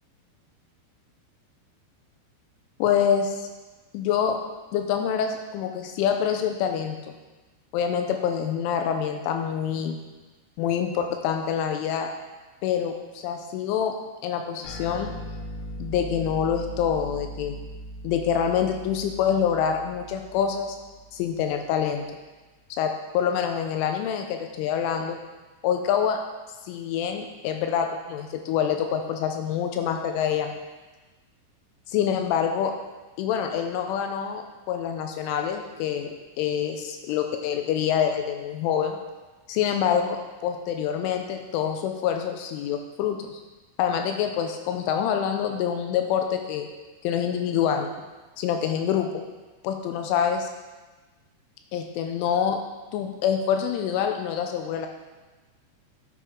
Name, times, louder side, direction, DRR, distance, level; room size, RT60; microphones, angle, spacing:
voice 1, 2.8-3.5 3.9-4.4 4.7-7.2 7.7-10.0 10.6-12.1 12.6-13.9 14.2-15.1 15.8-17.6 18.0-20.8 21.1-22.1 22.7-25.2 25.6-26.2 26.7-30.6 31.9-32.7 33.2-36.1 36.4-39.0 39.5-43.4 43.8-46.7 47.0-47.9 48.4-49.2 49.6-50.5 51.7-52.6 52.9-54.9, left 8 dB, 85° left, 4 dB, 3.1 m, -26 dB
sound 1, 14.6-21.5, equal, 50° left, 4.4 m, -39 dB
9.4 x 8.4 x 3.6 m, 1.2 s
omnidirectional pair, 5.6 m